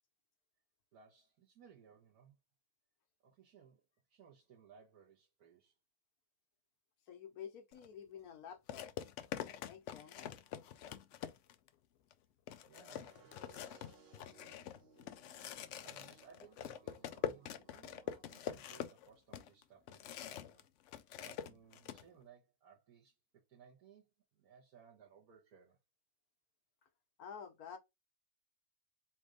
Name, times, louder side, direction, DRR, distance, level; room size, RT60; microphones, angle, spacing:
voice 1, 0.9-2.4 3.2-5.8 12.6-13.7 15.8-20.7 21.2-25.8, right 7 dB, 85° right, 1.6 m, -63 dB
voice 2, 7.1-8.9 9.6-10.1 27.2-27.8, left 8 dB, 85° left, 1.4 m, -50 dB
sound 1, 7.7-7.9 8.7-11.7 12.1-12.2 12.5-20.6 20.9-22.0, left 10 dB, 65° left, 0.8 m, -45 dB
sound 2, 12.8-18.8, right 4 dB, 45° right, 1.1 m, -66 dB
4.2 x 2.5 x 4.7 m
omnidirectional pair, 1.5 m